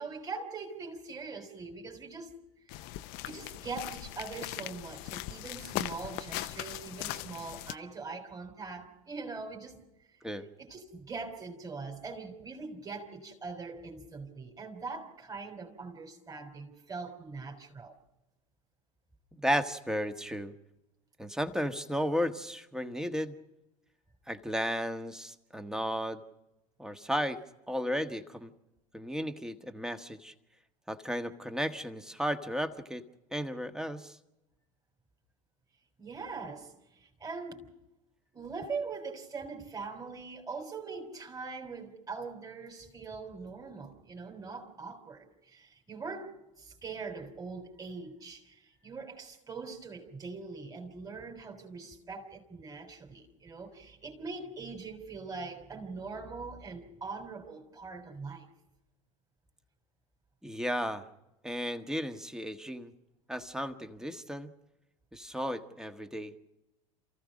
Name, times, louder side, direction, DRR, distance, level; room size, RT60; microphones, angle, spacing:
voice 1, 0.0-2.3 3.2-9.8 10.6-17.9 36.0-37.8 38.3-58.5, right 4 dB, 20° right, 2 dB, 3.6 m, -42 dB
sound 1, 2.7-7.8, left 16 dB, 55° left, 0.8 m, -39 dB
voice 2, 19.3-20.5 21.2-23.3 24.3-26.2 26.8-27.4 27.7-28.5 28.9-30.3 30.9-33.0 33.3-34.2 60.4-61.0 61.4-62.9 63.3-64.5 65.1-66.3, equal, 5° right, 8 dB, 1.5 m, -34 dB
28.0 x 15.0 x 6.4 m, 0.96 s
hypercardioid pair, 80°, 18 cm